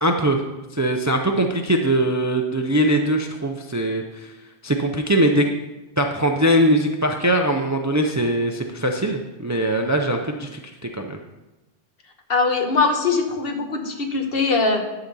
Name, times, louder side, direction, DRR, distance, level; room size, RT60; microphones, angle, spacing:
voice 1, 0.0-0.4 0.7-4.3 4.6-5.5 6.0-11.2, right 1 dB, 25° right, 3 dB, 0.4 m, -21 dB
voice 2, 12.3-14.8, left 4 dB, 65° left, 4 dB, 1.3 m, -21 dB
11.5 x 3.9 x 6.9 m, 1.1 s
omnidirectional pair, 1.1 m